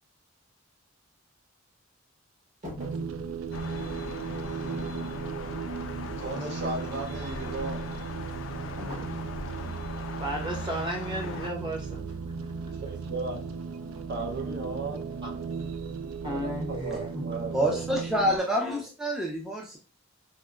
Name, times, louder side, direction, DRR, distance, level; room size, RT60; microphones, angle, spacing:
sound 1, 2.6-3.2 8.8-9.3 11.2-11.6 11.9-12.2, left 1 dB, 40° right, 1.3 m, -41 dB
sound 2, 2.8-18.4, right 5 dB, 80° right, 0.3 m, -36 dB
Thunder, 3.5-11.5, left 5 dB, 75° left, 0.3 m, -40 dB
voice 1, 6.1-7.8 12.8-13.4 14.1-15.0 16.3-16.4 16.7-17.6, right 3 dB, 55° right, 2 dB, 0.7 m, -35 dB
voice 2, 10.2-12.0 15.2-15.3 16.2-17.2, right 1 dB, 25° right, 0 dB, 0.9 m, -34 dB
voice 3, 17.5-19.8, equal, 5° right, -1 dB, 0.4 m, -27 dB
4.5 x 2.1 x 2.3 m, 0.34 s
head